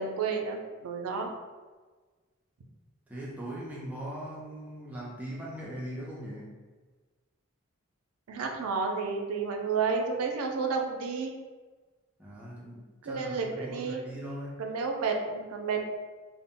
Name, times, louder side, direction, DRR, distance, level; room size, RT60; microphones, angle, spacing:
voice 1, 0.0-1.3 8.3-11.3 13.0-14.0 14.6-15.8, right 5 dB, 85° right, 2 dB, 0.4 m, -31 dB
voice 2, 3.1-6.5 12.2-14.6, right 1 dB, 5° right, -5 dB, 0.3 m, -40 dB
2.0 x 2.0 x 3.6 m, 1.4 s
head